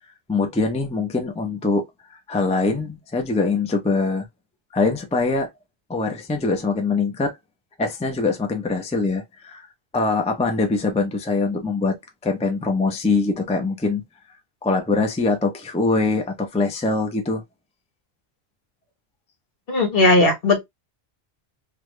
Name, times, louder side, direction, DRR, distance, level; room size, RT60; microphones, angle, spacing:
voice 1, 0.3-1.9 2.1-4.3 4.7-5.5 5.9-7.4 7.8-9.7 9.9-12.0 12.2-14.0 14.6-17.4, left 3 dB, 10° left, 0.5 m, -23 dB
voice 2, 19.7-20.6, left 2 dB, 65° left, 1.2 m, -17 dB
3.5 x 2.4 x 3.1 m
omnidirectional pair, 1.0 m